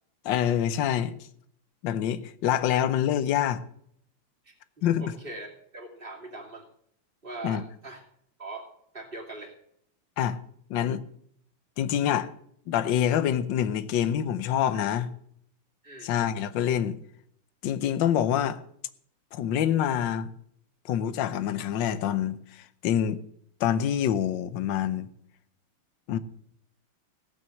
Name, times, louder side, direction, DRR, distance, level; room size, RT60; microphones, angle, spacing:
voice 1, 0.2-1.2 1.8-3.6 4.8-5.1 7.4-7.6 10.2-10.4 10.7-11.0 11.8-12.3 12.7-15.1 16.0-17.0 17.6-18.6 19.3-20.3 20.9-23.2 23.6-25.1 26.1-26.2, left 10 dB, 65° left, 1.4 m, -26 dB
voice 2, 5.0-6.6 7.2-8.0 8.4-8.7 8.9-9.5 15.8-16.1, right 2 dB, 25° right, 2.6 m, -41 dB
17.0 x 6.1 x 7.8 m
omnidirectional pair, 2.4 m